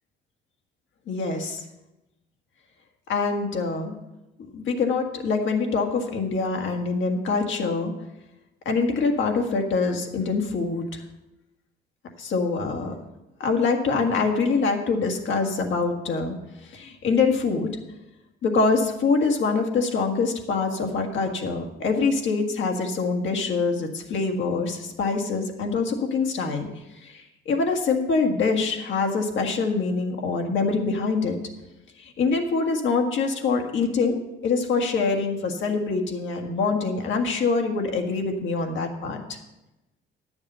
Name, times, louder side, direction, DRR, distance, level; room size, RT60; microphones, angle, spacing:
voice 1, 1.1-1.6 3.1-3.9 4.5-7.9 8.7-11.0 12.2-12.9 13.4-16.4 16.6-17.8 18.4-26.7 27.0-31.4 32.0-39.4, left 4 dB, 70° left, 3 dB, 1.7 m, -25 dB
10.0 x 7.1 x 6.8 m, 0.97 s
cardioid pair, 90°, 20 cm